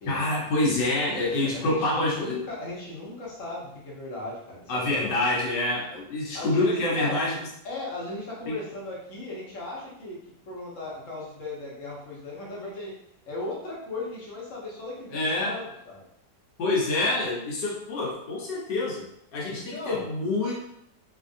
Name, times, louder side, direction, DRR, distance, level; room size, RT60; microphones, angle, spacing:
voice 1, 0.1-2.4 4.7-7.4 8.5-8.6 15.1-15.6 16.6-19.1 19.3-20.7, left 2 dB, 85° left, -4 dB, 1.4 m, -26 dB
voice 2, 1.1-5.0 6.3-7.2 7.6-12.9 13.3-16.0 19.5-20.0, left 2 dB, 55° left, -5 dB, 1.2 m, -37 dB
3.1 x 2.6 x 2.5 m, 0.75 s
omnidirectional pair, 1.8 m